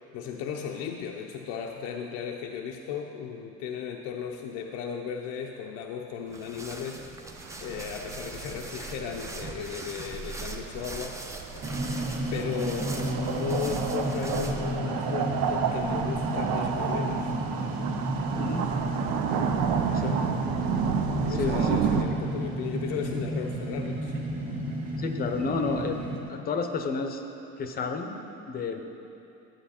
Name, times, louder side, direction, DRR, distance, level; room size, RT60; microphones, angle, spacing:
voice 1, 0.1-11.4 12.3-17.3 21.2-24.1, left 7 dB, 75° left, 1 dB, 0.7 m, -35 dB
sound 1, 6.3-14.8, right 2 dB, 10° right, 0.5 m, -41 dB
sound 2, 7.4-22.0, right 7 dB, 75° right, 0.8 m, -31 dB
sound 3, 11.6-26.2, right 1 dB, 30° right, 1.8 m, -32 dB
voice 2, 18.4-18.7 19.9-20.3 21.3-22.1 25.0-26.0 26.3-27.2 27.6-28.2 28.5-28.8, left 4 dB, 30° left, 5 dB, 0.7 m, -31 dB
11.5 x 7.9 x 4.3 m, 2.9 s
cardioid pair, 145°, 29 cm